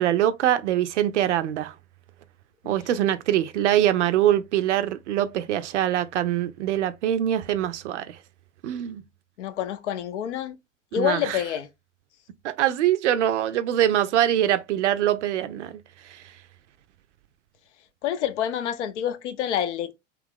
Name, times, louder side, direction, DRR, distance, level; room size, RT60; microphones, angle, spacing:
voice 1, 0.0-1.7 2.6-8.2 8.6-9.0 10.9-11.4 12.4-15.8 16.1-16.2, right 11 dB, 65° right, 0.5 m, -23 dB
voice 2, 9.4-10.6 10.9-11.7 18.0-19.9, left 10 dB, 65° left, 0.6 m, -27 dB
2.9 x 2.4 x 3.5 m
figure-of-eight pair, 85°, 38 cm